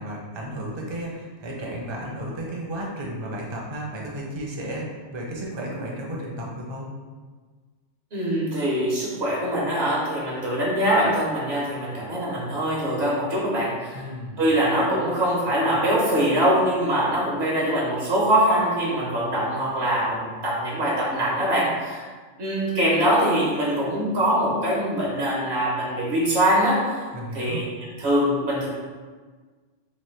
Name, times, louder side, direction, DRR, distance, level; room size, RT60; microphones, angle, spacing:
voice 1, 0.0-6.9 13.9-14.4 27.1-27.7, right 1 dB, 30° right, -2 dB, 0.5 m, -33 dB
voice 2, 8.1-14.0 14.4-22.0 22.4-27.1 27.3-27.7 28.0-28.7, right 1 dB, 65° right, -5 dB, 1.1 m, -23 dB
3.2 x 2.6 x 4.3 m, 1.4 s
omnidirectional pair, 1.2 m